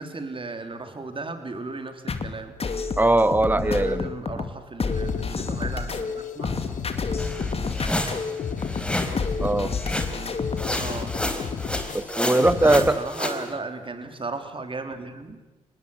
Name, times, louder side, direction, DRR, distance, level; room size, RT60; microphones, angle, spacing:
voice 1, 0.0-2.6 3.5-6.6 10.3-11.1 12.6-15.4, right 3 dB, 35° right, 7 dB, 3.5 m, -35 dB
sound 1, 2.1-10.7, left 4 dB, 40° left, 2.4 m, -30 dB
voice 2, 3.0-4.1 9.4-9.7 11.9-13.0, right 2 dB, 10° right, 14 dB, 1.3 m, -20 dB
sound 2, 4.9-12.9, left 6 dB, 60° left, 2.4 m, -33 dB
sound 3, 7.2-9.3 9.8-10.3 10.6-13.4, left 1 dB, 5° left, 4.0 m, -30 dB
25.0 x 19.5 x 7.9 m, 1.1 s
hypercardioid pair, 50°, 15 cm